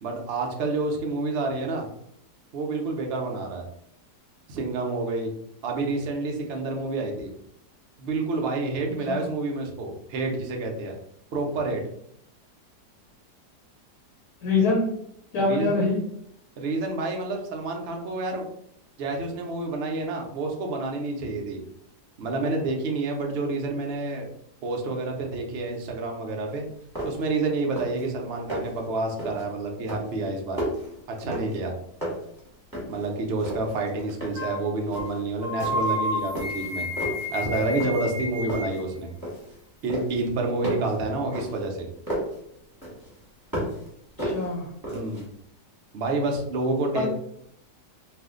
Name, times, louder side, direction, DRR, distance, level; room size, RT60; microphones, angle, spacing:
voice 1, 0.0-1.9 2.5-3.6 4.5-5.3 5.6-7.3 8.0-11.0 11.3-11.8 15.3-15.8 16.6-18.4 19.0-21.6 22.2-24.3 24.6-26.7 27.0-30.6 31.2-31.7 32.9-36.9 37.3-39.1 39.8-41.9 44.9-45.3 45.9-47.1, right 3 dB, 75° right, 1 dB, 0.5 m, -28 dB
voice 2, 14.4-14.9 15.3-16.0 44.2-44.7 46.9-47.1, left 3 dB, 70° left, -2 dB, 1.2 m, -24 dB
sound 1, 26.5-26.6 26.9-27.3 27.6-28.1 28.3-28.8 29.2-29.5 29.9-31.7 32.0-33.1 33.4-34.5 34.9-35.2 35.6-36.0 36.3-37.3 37.8-38.2 38.5-39.6 39.9-42.4 42.8-43.9 44.2-45.2, right 1 dB, 15° right, 1.0 m, -33 dB
sound 2, 34.4-34.6 34.9-35.1 35.4-38.8, left 1 dB, 20° left, 0.8 m, -30 dB
2.6 x 2.5 x 3.6 m, 0.71 s
omnidirectional pair, 1.8 m